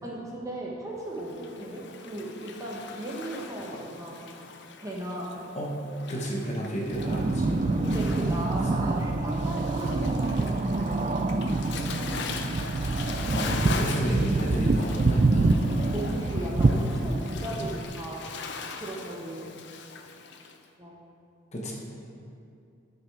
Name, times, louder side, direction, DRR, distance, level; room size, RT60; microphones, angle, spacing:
voice 1, 0.0-4.3 4.8-5.4 7.8-12.2 15.9-18.4 18.8-19.5 20.8-20.9, right 1 dB, 15° right, -3 dB, 1.1 m, -37 dB
Waves surf, 1.1-20.6, left 4 dB, 60° left, 0.5 m, -41 dB
voice 2, 6.1-7.4 13.3-15.6 21.5-21.7, equal, 35° left, -2 dB, 1.1 m, -31 dB
sound 1, 6.9-17.9, right 2 dB, 30° right, 0.3 m, -26 dB
9.8 x 5.8 x 4.8 m, 2.5 s
head